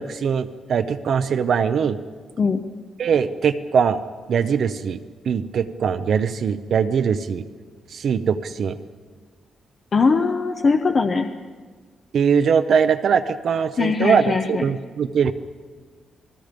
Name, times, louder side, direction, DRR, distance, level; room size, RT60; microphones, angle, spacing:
voice 1, 0.0-2.0 3.0-4.0 4.3-5.0 5.3-7.5 7.9-8.8 12.1-14.2 14.5-15.3, right 7 dB, 50° right, 8 dB, 0.7 m, -21 dB
voice 2, 9.9-11.3 13.8-14.6, left 4 dB, 30° left, 5 dB, 0.8 m, -20 dB
29.0 x 20.5 x 5.2 m, 1.5 s
wide cardioid pair, 175°, 0 cm